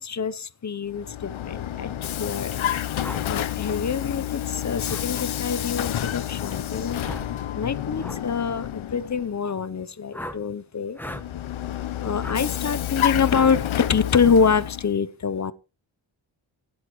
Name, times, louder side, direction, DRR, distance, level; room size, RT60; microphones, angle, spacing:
voice 1, 0.0-1.9 2.2-2.6 3.3-7.0 7.5-11.0 12.0-15.5, left 6 dB, 35° left, 0.7 m, -25 dB
Vehicle, 0.9-9.4 11.0-14.9, left 11 dB, 85° left, 0.7 m, -29 dB
sound 1, 3.0-3.2 4.9-5.1 7.0-7.3 8.0-8.2 10.1-10.4 10.9-11.3 12.2-12.4 13.3-13.6, left 1 dB, 5° left, 1.0 m, -36 dB
17.0 x 10.5 x 3.0 m
wide cardioid pair, 145°, 47 cm